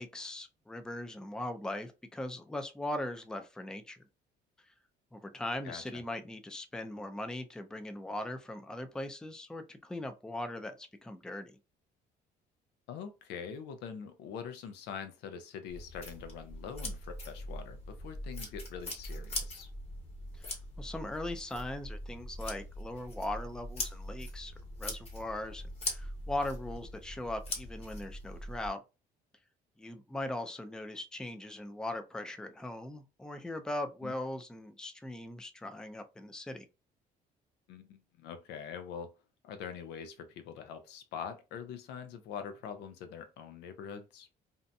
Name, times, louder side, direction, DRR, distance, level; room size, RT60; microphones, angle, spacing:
voice 1, 0.0-4.0 4.7-4.8 5.1-11.6 20.3-24.5 24.8-28.8 29.8-36.7, left 1 dB, 5° left, 0.4 m, -40 dB
voice 2, 5.6-6.0 12.9-19.7 34.0-34.2 37.7-39.1 39.4-44.3, left 7 dB, 85° left, 0.5 m, -44 dB
sound 1, 15.7-28.7, left 1 dB, 40° left, 1.2 m, -42 dB
2.6 x 2.2 x 2.5 m
cardioid pair, 110°, 17 cm